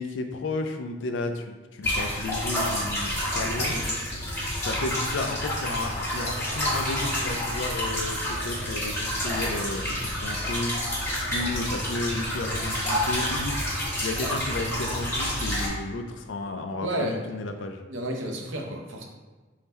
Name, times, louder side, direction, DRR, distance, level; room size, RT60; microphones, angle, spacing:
voice 1, 0.0-3.8 4.5-11.0 11.3-13.6 14.0-17.8, left 2 dB, 70° left, 6 dB, 0.4 m, -33 dB
sound 1, 1.8-15.7, equal, 15° left, 1.4 m, -29 dB
voice 2, 16.8-17.2 17.9-19.0, right 1 dB, 80° right, 1 dB, 0.7 m, -31 dB
3.6 x 2.7 x 4.2 m, 1.3 s
head